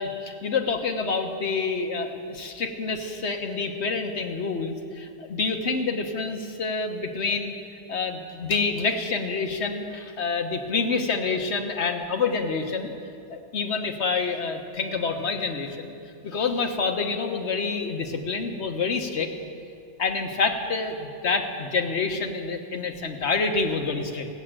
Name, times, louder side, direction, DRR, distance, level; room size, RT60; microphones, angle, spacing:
voice 1, 0.0-7.5 7.9-12.9 13.3-15.9 16.2-19.3 20.0-24.3, left 4 dB, 70° left, 5 dB, 1.4 m, -27 dB
16.5 x 7.4 x 8.9 m, 2.6 s
omnidirectional pair, 1.2 m